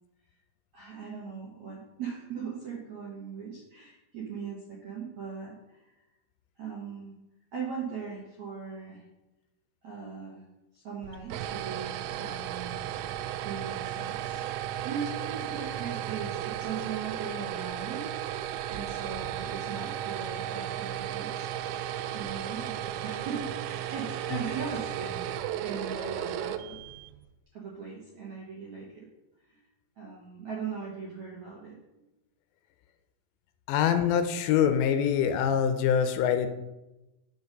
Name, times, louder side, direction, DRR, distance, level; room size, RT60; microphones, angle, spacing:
voice 1, 0.7-5.8 6.6-7.1 7.5-9.0 9.8-10.4 10.7-12.8 13.4-14.4 14.8-18.1 18.7-21.5 22.1-26.8 27.5-29.1 29.5-29.6 30.0-31.8, right 6 dB, 65° right, -5 dB, 1.9 m, -39 dB
sound 1, 11.0-27.2, right 11 dB, 85° right, 3.0 m, -35 dB
voice 2, 33.7-36.5, left 8 dB, 80° left, 8 dB, 2.7 m, -24 dB
7.9 x 7.2 x 5.3 m, 0.99 s
omnidirectional pair, 5.3 m